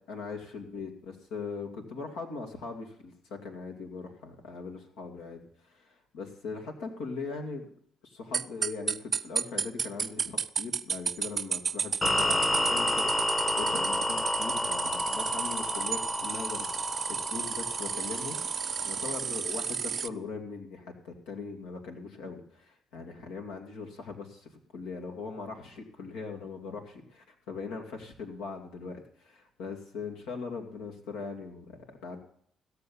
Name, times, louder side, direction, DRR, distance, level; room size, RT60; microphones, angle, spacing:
voice 1, 0.0-7.7 8.0-18.4 18.8-32.2, left 4 dB, 85° left, 2 dB, 2.2 m, -40 dB
sound 1, 8.3-20.1, right 6 dB, 50° right, 0.4 m, -32 dB
sound 2, 12.0-19.2, left 1 dB, 25° left, 1.1 m, -31 dB
16.0 x 6.9 x 7.0 m, 0.65 s
supercardioid pair, 65°, 0 cm